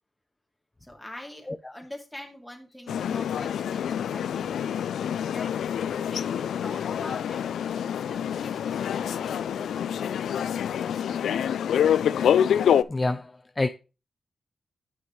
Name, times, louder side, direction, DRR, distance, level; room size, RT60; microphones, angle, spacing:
voice 1, 0.8-4.8 5.3-5.6 6.0-10.1, left 1 dB, 5° left, 2.7 m, -44 dB
sound 1, 2.9-12.8, left 9 dB, 90° left, 0.4 m, -26 dB
voice 2, 12.9-13.3 13.6-13.7, left 2 dB, 25° left, 0.5 m, -25 dB
9.8 x 6.2 x 3.2 m
cardioid pair, 70°, 0 cm